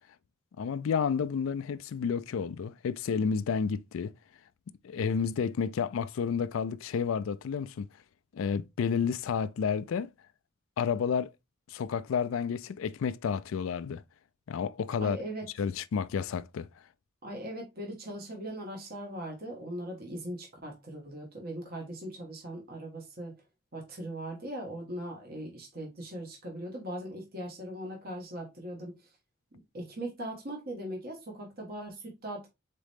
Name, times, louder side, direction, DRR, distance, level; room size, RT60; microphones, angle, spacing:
voice 1, 0.6-4.1 4.8-7.9 8.3-10.1 10.8-11.3 11.7-14.0 14.5-15.2 15.6-16.7, left 6 dB, 70° left, 0.3 m, -30 dB
voice 2, 15.0-15.4 17.2-23.3 23.7-28.9 29.7-32.5, right 1 dB, 45° right, 1.4 m, -39 dB
4.1 x 3.7 x 3.4 m
head